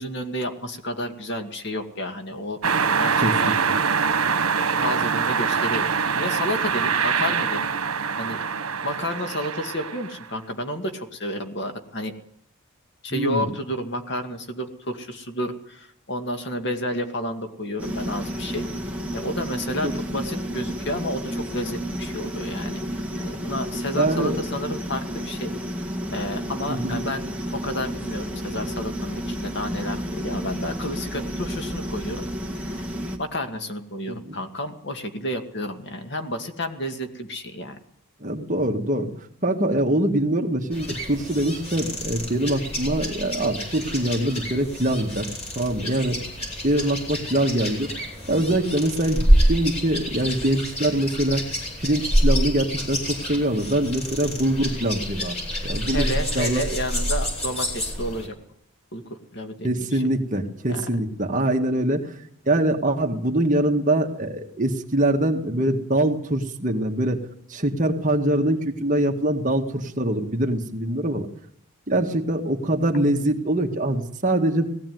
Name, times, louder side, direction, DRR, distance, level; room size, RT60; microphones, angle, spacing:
voice 1, 0.0-2.6 3.0-3.5 4.8-7.6 8.2-8.4 8.8-12.1 13.0-18.7 19.1-22.8 23.2-25.5 26.1-27.3 27.5-32.2 32.7-32.9 33.2-37.8 48.5-48.6 55.9-58.3 58.9-59.0 59.3-60.0 60.7-60.8, left 1 dB, 50° left, 6 dB, 2.2 m, -31 dB
sound 1, 2.6-10.2, right 6 dB, 85° right, 1.4 m, -24 dB
voice 2, 3.2-3.5 13.1-13.6 19.8-19.9 24.0-24.4 26.7-27.0 34.1-34.4 38.2-39.1 39.4-45.3 45.6-46.2 46.6-47.9 48.2-51.4 51.8-55.4 55.6-56.1 56.4-56.6 59.6-62.2 62.5-67.2 67.5-71.3 71.9-74.7, right 1 dB, 35° right, 3 dB, 1.9 m, -23 dB
sound 2, 17.8-33.2, equal, 5° right, 2.2 m, -31 dB
sound 3, 40.7-58.3, equal, 30° left, 7.2 m, -27 dB
19.0 x 16.0 x 9.5 m, 0.70 s
head